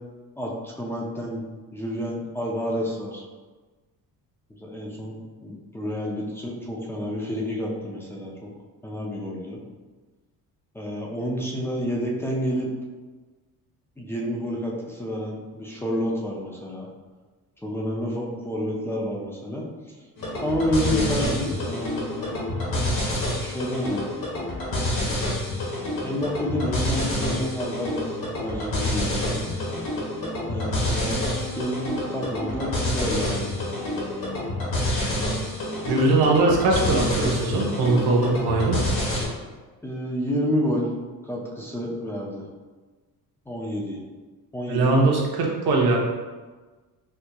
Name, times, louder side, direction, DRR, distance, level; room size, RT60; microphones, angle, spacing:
voice 1, 0.4-1.4 1.7-3.2 4.5-8.5 8.8-9.6 10.7-12.7 14.0-16.9 17.6-19.7 20.4-22.5 23.4-24.1 25.6-25.7 26.0-29.4 30.5-33.5 39.8-40.9 41.2-42.5 43.5-44.0 44.5-45.0, equal, 5° left, -3 dB, 0.4 m, -29 dB
sound 1, 20.2-39.2, left 1 dB, 65° left, 1.2 m, -28 dB
voice 2, 35.9-38.8 44.7-46.0, right 2 dB, 80° right, -1 dB, 0.8 m, -21 dB
4.4 x 2.7 x 2.2 m, 1.3 s
cardioid pair, 150°, 37 cm